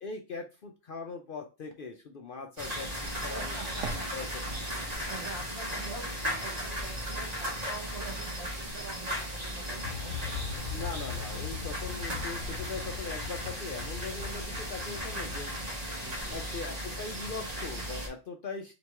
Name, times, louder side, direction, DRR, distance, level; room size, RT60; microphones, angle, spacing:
voice 1, 0.0-3.6 3.9-4.3 10.7-15.5 16.3-18.7, left 4 dB, 55° left, 3 dB, 0.7 m, -40 dB
sound 1, 2.6-18.1, equal, 35° right, 1.4 m, -36 dB
sound 2, 2.6-5.3, right 4 dB, 85° right, 1.0 m, -43 dB
voice 2, 3.3-4.3 5.1-10.4 15.7-16.4, right 2 dB, 55° right, 1 dB, 1.6 m, -45 dB
sound 3, 9.8-15.6, left 8 dB, 85° left, 1.1 m, -41 dB
4.5 x 3.0 x 3.4 m, 0.29 s
omnidirectional pair, 1.3 m